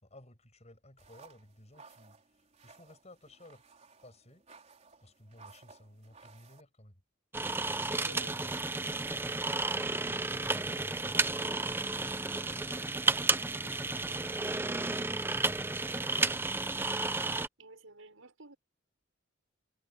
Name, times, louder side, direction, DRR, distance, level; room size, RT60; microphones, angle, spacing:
voice 1, 0.0-3.6 4.0-4.4 5.0-7.0 8.0-8.6 10.0-12.8 13.4-14.5 14.8-17.0, left 1 dB, 35° left, 6.9 m, -56 dB
sound 1, 1.0-6.6, right 4 dB, 35° right, 4.1 m, -58 dB
sound 2, 7.3-17.5, right 3 dB, 10° right, 0.5 m, -32 dB
voice 2, 7.8-8.7 17.6-18.6, right 2 dB, 80° right, 5.5 m, -53 dB
head